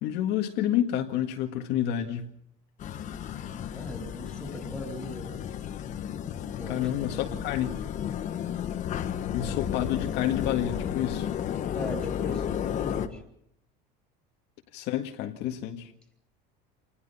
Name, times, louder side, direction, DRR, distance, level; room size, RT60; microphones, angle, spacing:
voice 1, 0.0-2.3 6.7-7.7 9.3-11.3 14.7-15.9, left 11 dB, 55° left, 2.0 m, -29 dB
sound 1, 2.8-13.1, left 9 dB, 35° left, 1.4 m, -33 dB
voice 2, 3.7-5.4 6.6-7.4 11.7-13.2, equal, 5° left, 4.3 m, -40 dB
28.0 x 20.5 x 5.7 m
cardioid pair, 165°, 21 cm